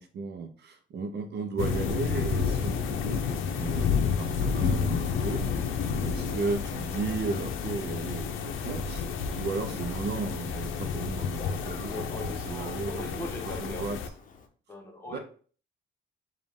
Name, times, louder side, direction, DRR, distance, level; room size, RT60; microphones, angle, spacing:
voice 1, 0.0-5.4 6.0-9.0 9.4-14.0 15.1-15.2, right 4 dB, 60° right, 6 dB, 0.6 m, -35 dB
sound 1, 1.6-14.1, left 6 dB, 85° left, 0.6 m, -30 dB
Thunder, 2.3-14.5, left 5 dB, 45° left, 0.7 m, -47 dB
voice 2, 11.7-13.9 14.7-15.2, left 1 dB, 10° left, 0 dB, 1.2 m, -40 dB
5.1 x 2.5 x 3.5 m, 0.42 s
cardioid pair, 90°, 20 cm